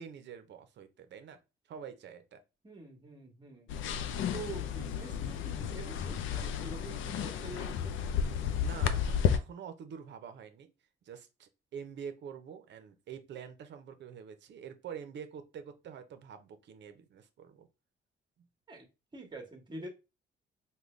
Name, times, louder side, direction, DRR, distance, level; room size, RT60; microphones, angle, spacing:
voice 1, 0.0-1.4 1.7-2.4 8.1-10.7 11.0-17.7, right 7 dB, 65° right, 0.6 m, -46 dB
voice 2, 2.6-3.7 4.3-8.0 18.7-18.9 19.1-19.9, right 2 dB, 20° right, 1.1 m, -46 dB
sound 1, 3.7-9.4, left 8 dB, 80° left, 0.4 m, -32 dB
3.7 x 2.2 x 3.1 m
cardioid pair, 90°, 20 cm